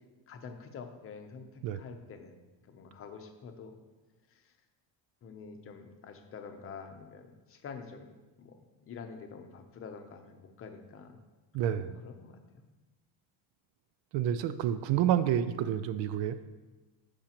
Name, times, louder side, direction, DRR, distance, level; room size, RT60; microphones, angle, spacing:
voice 1, 0.3-2.3 2.7-3.8 4.3-4.5 5.2-8.1 8.4-11.2 11.7-12.6, left 5 dB, 30° left, 5 dB, 0.7 m, -47 dB
voice 2, 11.5-12.0 14.1-16.4, right 10 dB, 70° right, 12 dB, 0.5 m, -29 dB
14.5 x 5.1 x 2.9 m, 1.2 s
cardioid pair, 170°, 46 cm